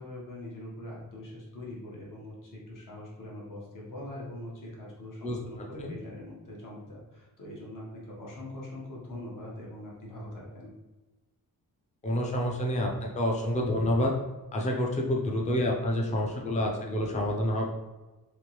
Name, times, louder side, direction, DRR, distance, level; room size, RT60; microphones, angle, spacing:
voice 1, 0.0-10.7, left 1 dB, 55° left, -4 dB, 1.2 m, -42 dB
voice 2, 12.0-14.1 14.5-17.6, left 1 dB, 20° left, -1 dB, 0.5 m, -28 dB
3.3 x 3.0 x 3.0 m, 1.2 s
wide cardioid pair, 160°, 38 cm